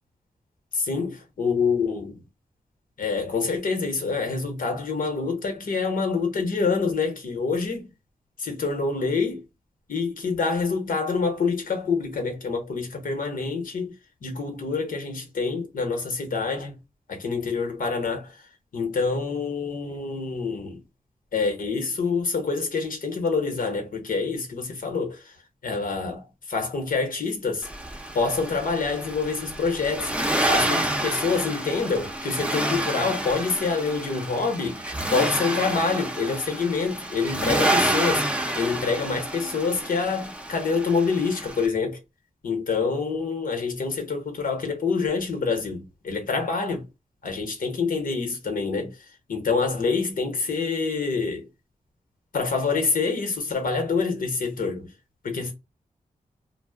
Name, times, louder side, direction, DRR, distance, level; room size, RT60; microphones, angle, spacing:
voice 1, 0.7-2.2 3.0-7.9 8.4-9.4 9.9-13.9 14.2-16.8 17.1-18.5 18.7-20.8 21.3-25.3 25.6-27.7 28.1-30.1 30.4-38.3 38.5-42.0 42.4-46.9 47.2-51.5 52.3-54.9 55.2-55.5, left 4 dB, 80° left, 1.0 m, -26 dB
Accelerating revving vroom, 27.6-41.7, right 1 dB, 10° right, 0.6 m, -28 dB
2.3 x 2.1 x 3.4 m
cardioid pair, 50°, 14 cm